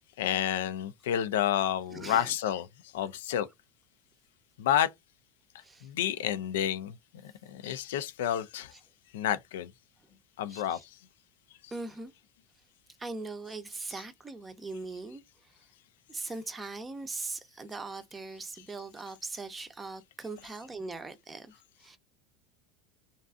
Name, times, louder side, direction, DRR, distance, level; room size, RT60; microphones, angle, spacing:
voice 1, 0.2-2.7 2.9-3.5 4.6-4.9 5.8-6.9 7.2-8.7 9.1-9.7 10.4-10.8 11.6-11.7 14.0-14.1, left 10 dB, 80° left, 0.3 m, -30 dB
voice 2, 1.9-2.3 5.6-5.9 7.7-7.8 10.5-10.8 11.7-12.1 13.0-15.2 16.1-21.5 21.8-22.0, right 3 dB, 20° right, 0.5 m, -40 dB
2.5 x 2.4 x 2.3 m
supercardioid pair, 105°, 0 cm